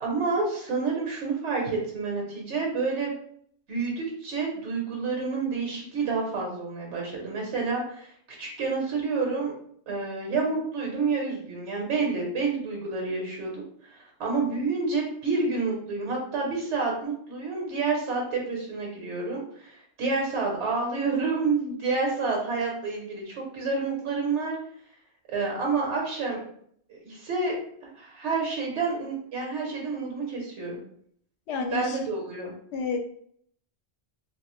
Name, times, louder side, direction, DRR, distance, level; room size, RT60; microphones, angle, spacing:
voice 1, 0.0-3.1 3.7-9.5 9.9-24.6 25.3-26.4 26.9-27.5 27.8-30.8 31.7-32.5, right 4 dB, 75° right, -1 dB, 1.1 m, -29 dB
voice 2, 31.5-32.0 32.7-33.0, left 4 dB, 75° left, 4 dB, 0.8 m, -29 dB
2.7 x 2.5 x 3.0 m, 0.64 s
omnidirectional pair, 1.2 m